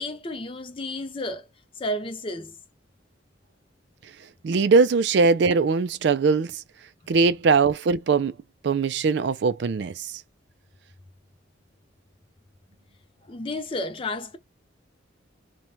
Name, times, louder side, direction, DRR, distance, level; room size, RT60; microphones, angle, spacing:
voice 1, 0.0-1.5 1.8-2.6 13.3-14.4, left 1 dB, 25° left, 0.4 m, -32 dB
voice 2, 4.4-6.6 7.1-8.3 8.6-10.1, right 4 dB, 60° right, 0.3 m, -21 dB
2.6 x 2.2 x 2.9 m
head